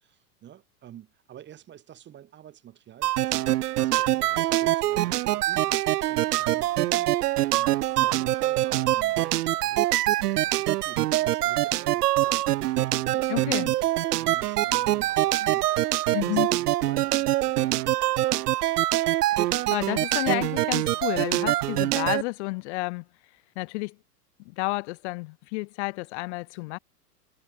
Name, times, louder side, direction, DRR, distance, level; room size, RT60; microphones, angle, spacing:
voice 1, 0.4-13.8 14.2-17.8, right 11 dB, 25° right, 1.4 m, -48 dB
sound 1, 3.0-22.2, right 15 dB, 80° right, 0.5 m, -24 dB
voice 2, 13.3-13.7 15.4-15.5 16.1-16.5 19.4-23.0 23.6-24.0 24.4-26.8, left 26 dB, 45° left, 1.1 m, -31 dB
hypercardioid pair, 105°, 47 cm